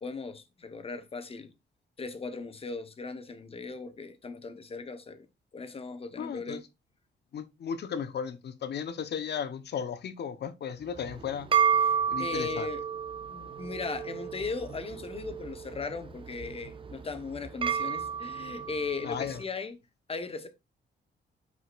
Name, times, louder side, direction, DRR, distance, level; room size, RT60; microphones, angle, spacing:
voice 1, 0.0-1.5 2.0-5.3 5.5-6.6 11.8-12.8 13.3-19.8 20.1-20.5, left 4 dB, 30° left, 1.1 m, -38 dB
voice 2, 6.2-6.6 7.3-11.5 12.1-12.7 19.0-19.4, left 7 dB, 60° left, 1.0 m, -35 dB
sound 1, 10.9-19.4, right 7 dB, 25° right, 0.7 m, -32 dB
12.5 x 5.0 x 2.5 m
wide cardioid pair, 135°, 19 cm